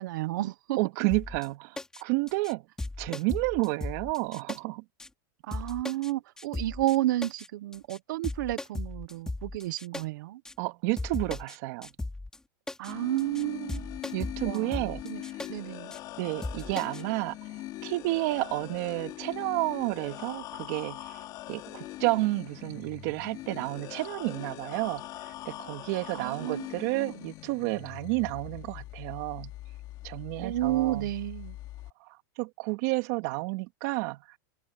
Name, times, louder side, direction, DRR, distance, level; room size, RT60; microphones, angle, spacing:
voice 1, 0.0-0.8 5.5-10.4 12.8-13.9 14.4-15.2 15.5-15.9 26.1-26.7 26.9-27.2 30.4-31.6, right 15 dB, 65° right, 1.3 m, -31 dB
voice 2, 0.8-2.6 3.0-4.8 10.6-11.9 14.1-15.0 16.2-17.4 17.8-29.5 30.0-31.1 32.0-34.4, right 23 dB, 50° right, 2.3 m, -31 dB
sound 1, 1.1-1.5 1.8-2.0 2.3-2.5 2.8-4.6 5.0-5.1 5.5-6.1 6.4-7.0 7.2-7.5 7.7-8.0 8.2-10.0 10.5-10.6 11.0-11.6 11.8-12.4 12.7-12.9 13.2-13.4 13.7-15.5 15.9-16.0 16.4-17.0, left 2 dB, 5° left, 3.6 m, -37 dB
sound 2, 12.9-31.9, left 16 dB, 35° left, 3.2 m, -42 dB
supercardioid pair, 150°, 11 cm